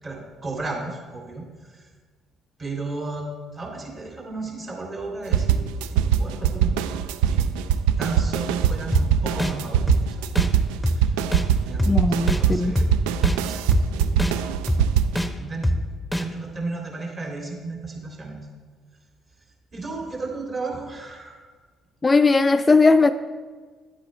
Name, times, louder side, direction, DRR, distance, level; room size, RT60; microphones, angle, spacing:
voice 1, 0.0-1.9 2.6-5.6 6.0-6.9 7.3-7.5 8.0-10.2 10.8-11.2 11.6-12.9 13.4-14.2 15.4-18.4 19.7-21.5, right 3 dB, 40° right, 2.9 m, -34 dB
sound 1, 5.3-15.2, right 8 dB, 75° right, 0.3 m, -22 dB
sound 2, 8.9-9.0 9.4-9.5 9.9-10.0 10.3-10.5 10.8-11.0 11.3-11.4 11.8-11.9 12.3-12.4 12.8-12.9 13.2-13.4 13.7-13.8 14.2-14.3 14.7-14.8 15.2-15.3 15.6-15.8 16.1-16.2, equal, 5° left, 0.8 m, -22 dB
voice 2, 11.9-12.8 22.0-23.1, left 3 dB, 25° left, 0.3 m, -18 dB
9.6 x 8.4 x 3.2 m
hypercardioid pair, 50°, 0 cm